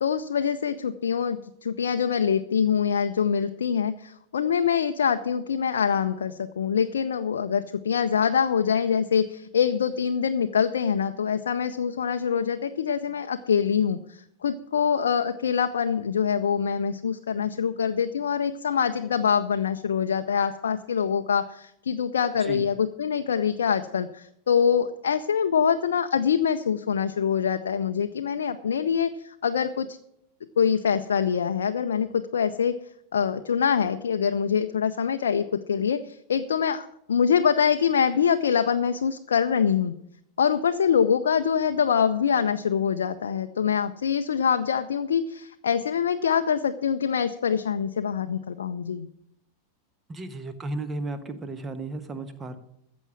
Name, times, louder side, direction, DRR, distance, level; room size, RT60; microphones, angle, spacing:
voice 1, 0.0-30.0 30.6-32.7 33.1-39.9 40.4-49.1, left 7 dB, 65° left, 7 dB, 0.5 m, -24 dB
voice 2, 50.1-52.6, right 2 dB, 20° right, 10 dB, 1.3 m, -34 dB
14.5 x 7.1 x 6.2 m, 0.76 s
figure-of-eight pair, 90°, 0 cm